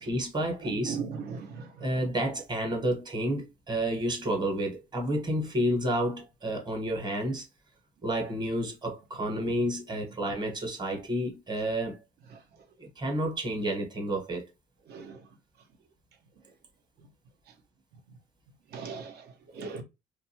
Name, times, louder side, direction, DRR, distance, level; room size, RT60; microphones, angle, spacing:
voice 1, 0.0-1.0 1.8-7.4 8.0-12.0 12.8-14.4, right 1 dB, 25° right, 1.1 m, -30 dB
voice 2, 0.7-1.6 14.9-15.1 18.7-19.1 19.6-19.8, right 6 dB, 70° right, 0.9 m, -36 dB
2.5 x 2.4 x 2.8 m
cardioid pair, 110°, 17 cm